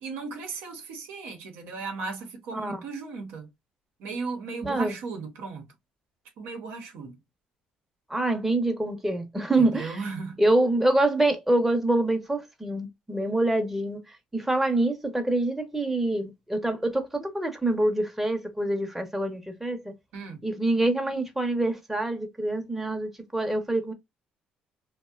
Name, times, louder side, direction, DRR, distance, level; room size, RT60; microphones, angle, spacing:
voice 1, 0.0-3.5 4.0-5.7 6.4-7.2 9.6-10.4 20.1-20.4, right 4 dB, 80° right, 0.7 m, -36 dB
voice 2, 2.5-2.8 4.6-4.9 8.1-10.0 10.4-14.0 14.3-19.9 20.4-23.9, right 2 dB, 5° right, 0.6 m, -26 dB
2.6 x 2.1 x 2.3 m
cardioid pair, 85°, 3 cm